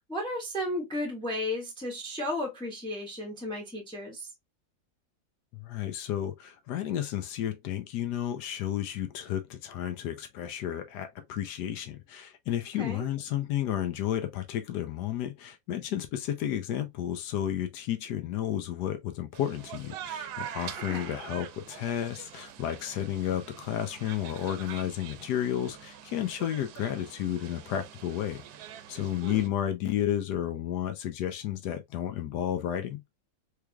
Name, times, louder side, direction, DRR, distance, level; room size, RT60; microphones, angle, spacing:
voice 1, 0.1-4.3 12.8-13.1 20.9-21.1 29.2-29.5, left 1 dB, 5° left, 1.0 m, -34 dB
voice 2, 5.5-28.4 28.9-33.0, left 11 dB, 85° left, 1.2 m, -32 dB
sound 1, 19.3-29.5, right 10 dB, 80° right, 1.1 m, -44 dB
3.5 x 3.2 x 2.2 m
omnidirectional pair, 1.7 m